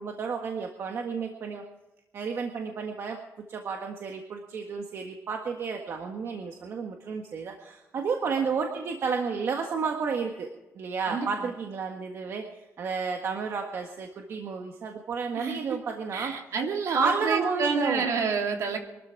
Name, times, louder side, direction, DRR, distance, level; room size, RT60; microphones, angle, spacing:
voice 1, 0.0-1.6 2.1-3.2 3.5-10.5 10.7-16.3 16.9-18.1, right 5 dB, 50° right, 3 dB, 1.6 m, -31 dB
voice 2, 11.1-11.5 15.3-15.6 16.1-18.8, right 5 dB, 65° right, 2 dB, 3.1 m, -28 dB
23.5 x 13.0 x 4.7 m, 1.0 s
cardioid pair, 165°, 6 cm